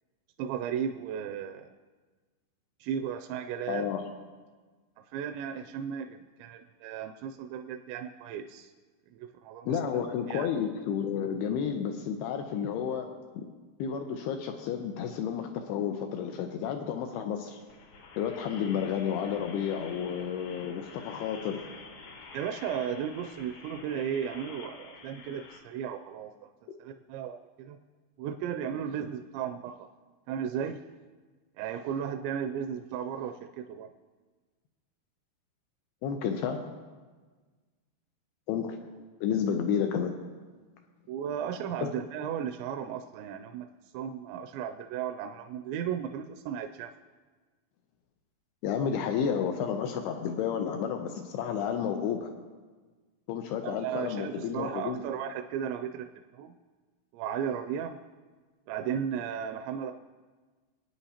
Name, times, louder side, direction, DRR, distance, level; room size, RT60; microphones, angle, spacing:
voice 1, 0.4-1.7 2.8-3.9 5.1-8.7 9.1-10.5 22.3-26.3 26.8-27.8 28.2-29.9 30.3-30.8 31.6-33.9 41.1-43.7 43.9-46.9 53.6-56.1 56.3-56.5 57.1-58.0 58.7-59.9, right 8 dB, 85° right, 6 dB, 2.7 m, -35 dB
voice 2, 3.7-4.0 9.7-13.5 13.8-17.6 18.2-21.6 36.0-36.6 38.5-38.8 39.2-40.1 48.6-52.3 53.3-55.0, left 7 dB, 90° left, 5 dB, 2.2 m, -31 dB
sound 1, 17.6-25.6, left 4 dB, 70° left, 1.8 m, -48 dB
22.5 x 9.4 x 2.8 m, 1.4 s
omnidirectional pair, 5.3 m